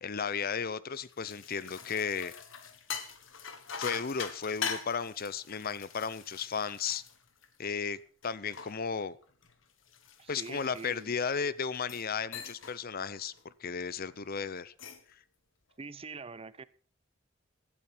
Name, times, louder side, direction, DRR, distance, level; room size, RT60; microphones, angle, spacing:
voice 1, 0.0-2.3 3.8-7.0 7.6-9.2 10.3-14.7 15.1-15.2, left 6 dB, 50° left, 18 dB, 0.7 m, -34 dB
sound 1, 1.0-7.8 8.2-11.2 11.7-12.1 12.3-12.8 13.1-13.4 14.6-15.1, left 6 dB, 75° left, 1.6 m, -42 dB
voice 2, 10.2-11.1 15.8-16.6, right 4 dB, 30° right, 17 dB, 0.6 m, -44 dB
15.5 x 12.5 x 4.4 m, 0.41 s
head